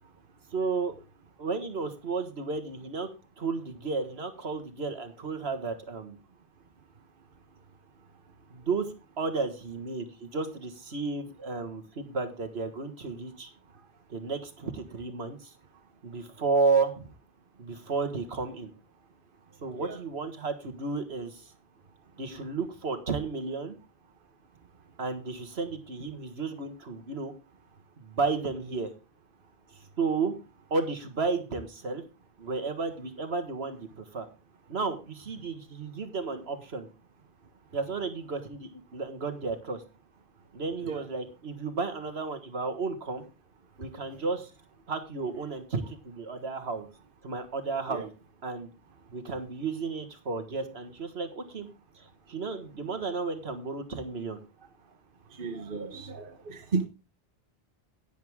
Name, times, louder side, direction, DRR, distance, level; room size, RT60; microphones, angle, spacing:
voice 1, 0.5-1.0 1.4-3.1 3.4-6.2 8.5-13.5 14.1-15.5 16.0-17.1 17.6-18.7 19.6-21.4 22.2-23.8 25.0-27.3 28.0-28.9 30.0-30.3 30.7-32.0 32.4-34.3 34.7-36.9 37.7-39.8 40.5-43.3 43.8-44.5 44.9-46.9 47.2-48.1 48.4-48.7 49.1-51.7 52.0-54.4, right 4 dB, 80° right, 8 dB, 1.9 m, -32 dB
voice 2, 55.3-56.9, right 4 dB, 55° right, 6 dB, 1.3 m, -34 dB
11.0 x 10.5 x 3.6 m, 0.30 s
omnidirectional pair, 1.1 m